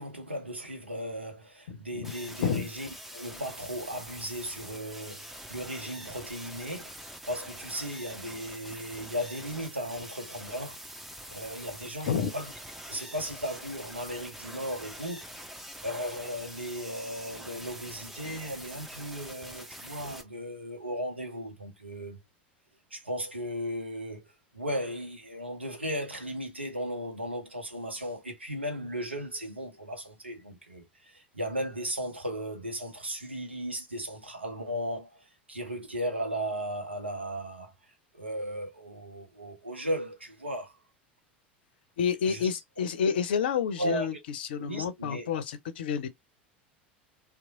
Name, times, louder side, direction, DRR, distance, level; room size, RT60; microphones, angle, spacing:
voice 1, 0.0-6.9 7.3-10.8 11.3-12.5 12.9-15.2 15.8-22.2 22.9-37.7 38.1-40.7 42.2-42.5 43.8-44.2 44.6-45.3, equal, 85° right, 0.7 m, -36 dB
voice 2, 1.7-2.1 2.4-2.7 12.1-12.3 42.0-46.1, left 7 dB, 65° left, 0.5 m, -29 dB
sound 1, 2.0-20.2, equal, 5° right, 0.6 m, -45 dB
2.9 x 2.1 x 2.6 m
figure-of-eight pair, 80°, 6 cm